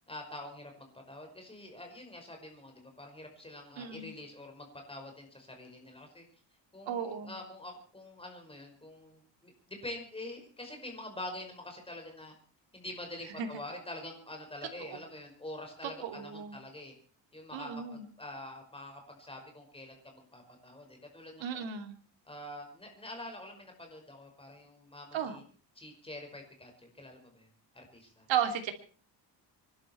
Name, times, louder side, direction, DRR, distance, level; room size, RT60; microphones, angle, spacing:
voice 1, 0.1-6.2 6.7-12.3 12.7-16.9 17.3-21.7 22.3-25.4 25.8-28.3, left 1 dB, 10° left, 3 dB, 5.4 m, -46 dB
voice 2, 3.8-4.1 6.9-7.3 13.4-13.5 14.9-15.0 16.0-16.6 17.5-18.0 21.4-21.9 25.1-25.4 28.3-28.7, right 8 dB, 80° right, 5 dB, 2.9 m, -34 dB
26.0 x 12.0 x 4.5 m, 0.41 s
cardioid pair, 140°, 44 cm